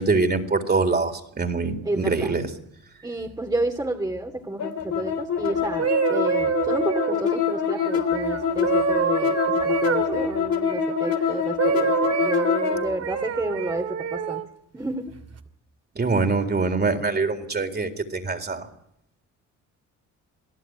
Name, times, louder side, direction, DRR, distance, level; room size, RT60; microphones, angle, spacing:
voice 1, 0.0-2.5 16.0-18.7, right 4 dB, 35° right, 6 dB, 3.9 m, -24 dB
voice 2, 1.8-2.3 3.0-14.4 14.7-15.1, right 1 dB, 15° right, 3 dB, 2.9 m, -31 dB
sound 1, 4.6-12.8, left 8 dB, 75° left, 3.6 m, -25 dB
sound 2, 5.6-11.2 11.6-14.5 15.1-15.4, right 6 dB, 55° right, 2.7 m, -27 dB
28.0 x 18.0 x 9.5 m, 0.78 s
cardioid pair, 90°, 30 cm